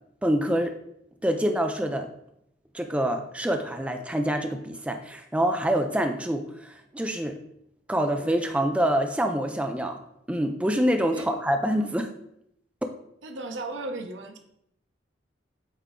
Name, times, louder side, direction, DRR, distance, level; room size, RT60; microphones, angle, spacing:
voice 1, 0.2-0.7 1.2-2.1 2.7-7.4 7.9-10.0 10.3-12.1, right 1 dB, 5° right, 5 dB, 0.4 m, -26 dB
voice 2, 13.2-14.4, right 2 dB, 90° right, 6 dB, 0.8 m, -35 dB
8.2 x 3.4 x 3.7 m, 0.76 s
head